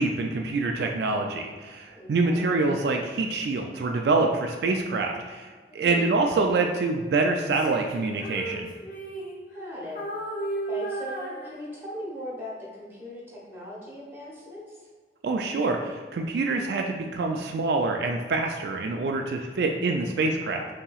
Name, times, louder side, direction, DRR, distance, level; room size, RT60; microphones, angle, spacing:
voice 1, 0.0-8.7 15.2-20.7, right 3 dB, 70° right, 3 dB, 0.3 m, -26 dB
voice 2, 1.9-2.5 5.8-6.1 9.5-10.0 10.7-14.9, equal, 15° right, -6 dB, 1.0 m, -39 dB
Female singing, 7.4-9.6 9.9-12.0, right 2 dB, 50° left, 0.9 m, -35 dB
5.5 x 2.8 x 2.3 m, 1.5 s
head